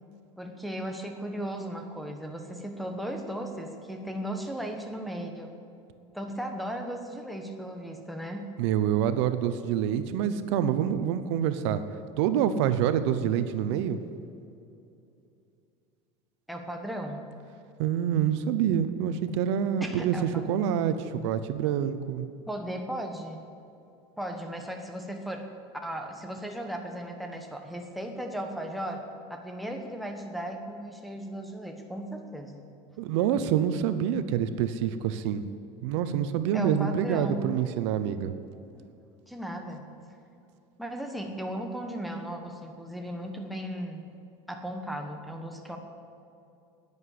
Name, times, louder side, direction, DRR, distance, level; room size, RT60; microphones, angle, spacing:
voice 1, 0.4-5.5 6.1-8.5 16.5-17.2 19.8-20.5 22.5-23.4 24.2-25.5 25.8-29.0 29.3-32.6 36.5-37.5 38.7-38.9 39.3-39.8 40.8-44.0 44.5-45.8, right 1 dB, ahead, 2 dB, 1.2 m, -36 dB
voice 2, 8.6-11.8 12.2-14.0 17.8-20.1 20.5-22.3 33.0-35.4 35.8-38.3, right 9 dB, 75° right, 11 dB, 0.8 m, -26 dB
10.5 x 9.8 x 8.4 m, 2.7 s
supercardioid pair, 145°, 15 cm